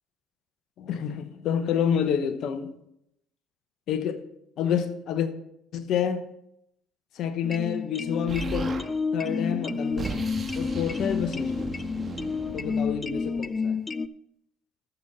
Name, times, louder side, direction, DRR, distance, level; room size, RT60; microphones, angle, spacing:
voice 1, 0.8-2.7 3.9-4.2 4.6-5.3 5.7-6.2 7.2-8.8 9.1-10.1 10.6-11.7 12.5-13.8, left 8 dB, 60° left, 1.0 m, -28 dB
sound 1, 7.4-14.1, left 4 dB, 25° left, 0.4 m, -30 dB
Explosion, 8.3-8.9 9.6-13.5, right 4 dB, 35° right, 1.6 m, -37 dB
14.0 x 6.8 x 4.2 m
supercardioid pair, 70°, 0 cm